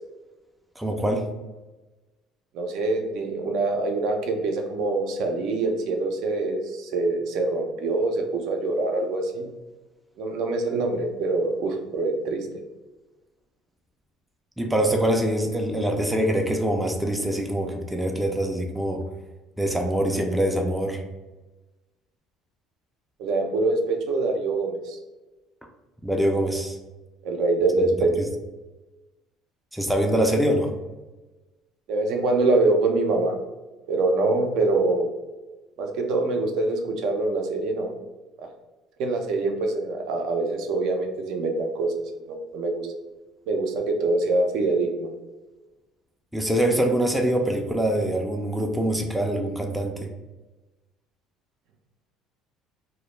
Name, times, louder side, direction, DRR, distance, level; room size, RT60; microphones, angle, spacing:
voice 1, 0.8-1.2 14.6-19.0 19.6-21.0 26.0-26.8 29.7-30.7 46.3-50.1, right 1 dB, 5° right, 2 dB, 0.3 m, -24 dB
voice 2, 2.5-9.5 10.2-12.5 23.2-25.0 27.2-28.1 31.9-33.3 33.9-35.1 35.8-37.9 38.4-38.5 39.0-41.9 42.3-42.9 43.5-45.1, right 2 dB, 65° right, 4 dB, 0.4 m, -24 dB
2.2 x 2.0 x 3.0 m, 1.1 s
cardioid pair, 125°, 0 cm